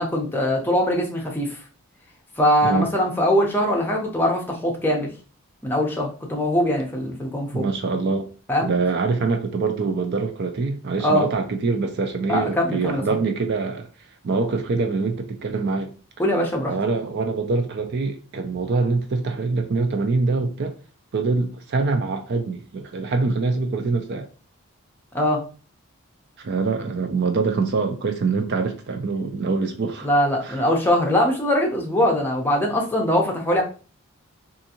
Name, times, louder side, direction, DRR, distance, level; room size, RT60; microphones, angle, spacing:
voice 1, 0.0-1.6 2.4-5.1 5.6-7.6 8.5-8.7 11.0-11.3 12.3-13.2 16.2-16.7 25.1-25.4 30.0-33.6, equal, 10° left, 0.7 m, -22 dB
voice 2, 7.5-8.3 8.6-13.9 14.2-15.9 16.7-20.7 21.1-24.3 26.4-30.1 30.4-30.6, right 4 dB, 50° right, 0.4 m, -24 dB
3.6 x 2.6 x 2.8 m
head